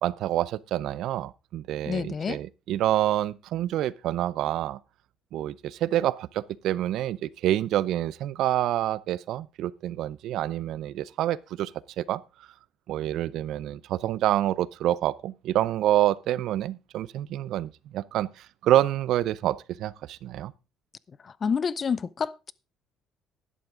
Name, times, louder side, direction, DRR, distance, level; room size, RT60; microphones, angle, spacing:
voice 1, 0.0-4.8 5.3-11.7 12.0-12.2 12.9-20.5, right 13 dB, 70° right, 0.5 m, -27 dB
voice 2, 1.9-2.4 21.2-22.5, left 6 dB, 30° left, 0.5 m, -28 dB
12.0 x 11.0 x 3.7 m
cardioid pair, 140°, 0 cm